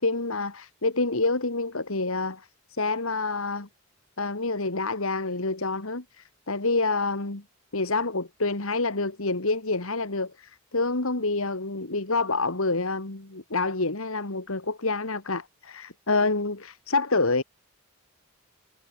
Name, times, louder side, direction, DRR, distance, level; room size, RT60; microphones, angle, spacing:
voice 1, 0.0-3.7 4.2-7.4 7.7-17.4, left 3 dB, 70° left, 2.2 m, -27 dB
head